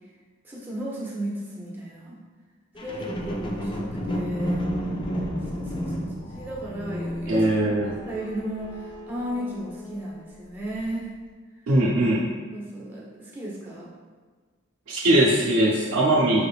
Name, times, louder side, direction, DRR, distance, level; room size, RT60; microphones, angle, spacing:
voice 1, 0.4-2.2 2.8-4.7 5.5-11.1 12.5-13.9, right 1 dB, 10° right, -5 dB, 0.7 m, -35 dB
sound 1, 2.8-10.2 10.8-10.9, equal, 25° left, 0.3 m, -32 dB
voice 2, 7.3-8.0 11.7-12.3 14.9-16.5, right 1 dB, 85° right, -6 dB, 0.6 m, -20 dB
4.7 x 3.4 x 2.3 m, 1.5 s
head